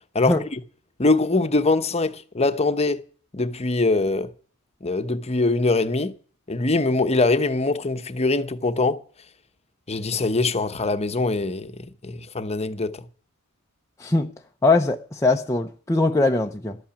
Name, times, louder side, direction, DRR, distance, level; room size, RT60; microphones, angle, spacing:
voice 1, 0.1-0.6 1.0-3.0 3.3-4.3 4.8-6.1 6.5-9.0 9.9-11.7 12.0-13.0, left 3 dB, 30° left, 0.9 m, -23 dB
voice 2, 14.0-14.3 14.6-16.8, left 2 dB, 15° left, 0.6 m, -21 dB
12.5 x 8.8 x 8.6 m
head